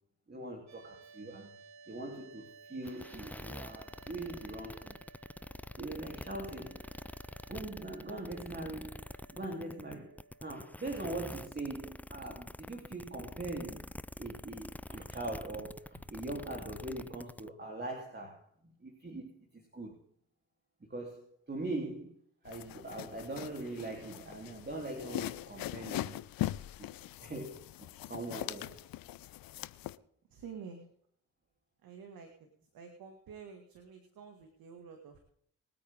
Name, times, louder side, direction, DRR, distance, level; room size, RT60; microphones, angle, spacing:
voice 1, 0.3-1.5 1.9-5.0 5.8-6.8 7.5-9.0 9.3-18.4 18.8-20.0 20.9-22.1 22.4-26.3 26.8-26.9 27.2-28.8, right 2 dB, 30° right, 3.6 m, -42 dB
sound 1, 0.7-10.7, right 4 dB, 50° right, 2.2 m, -57 dB
sound 2, 2.8-17.5, left 1 dB, 5° left, 0.6 m, -46 dB
sound 3, 22.5-30.0, left 15 dB, 75° left, 0.7 m, -41 dB
voice 2, 30.3-30.8 31.8-32.3 32.7-35.3, right 6 dB, 75° right, 2.3 m, -49 dB
24.0 x 9.0 x 3.8 m
hypercardioid pair, 40°, 35 cm